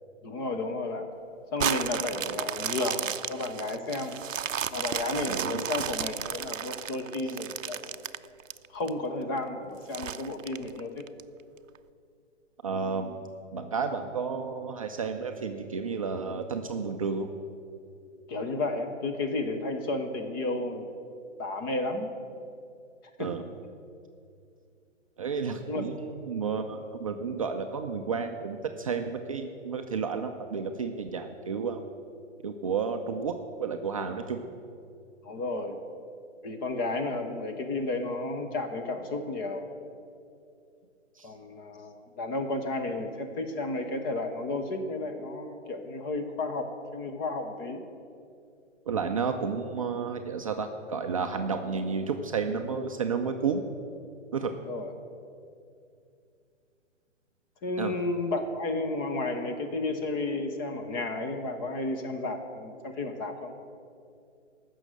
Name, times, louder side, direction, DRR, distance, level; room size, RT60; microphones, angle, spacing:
voice 1, 0.2-1.1 1.5-4.4 4.7-8.0 8.7-11.0 18.3-20.9 21.4-22.1 23.2-23.3 25.7-25.8 35.2-35.8 36.4-39.7 41.2-47.8 54.6-54.9 57.6-63.5, left 2 dB, 20° left, 5 dB, 0.6 m, -32 dB
sound 1, 1.6-8.9 9.4-9.5 9.9-11.2 11.8-11.9, right 9 dB, 85° right, 0.5 m, -33 dB
voice 2, 5.3-5.6 12.6-13.2 13.5-17.3 23.2-23.4 25.2-31.8 32.4-34.4 41.2-41.3 48.9-53.6 54.3-54.5 57.8-57.9, right 5 dB, 30° right, 5 dB, 0.4 m, -31 dB
15.0 x 6.3 x 6.6 m, 2.5 s
figure-of-eight pair, 135°, 38 cm